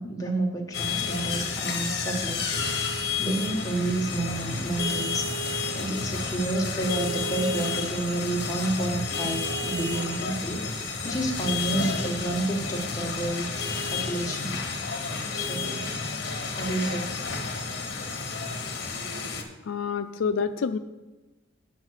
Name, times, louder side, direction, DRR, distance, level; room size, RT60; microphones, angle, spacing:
voice 1, 0.0-2.6 3.2-5.3 5.7-14.6 15.3-15.8 16.5-17.1, right 2 dB, 15° left, 0 dB, 1.3 m, -30 dB
sound 1, 0.7-19.4, left 4 dB, 60° left, 1.2 m, -31 dB
voice 2, 19.7-20.8, left 6 dB, 80° left, 9 dB, 0.4 m, -27 dB
8.7 x 5.7 x 6.4 m, 1.1 s
head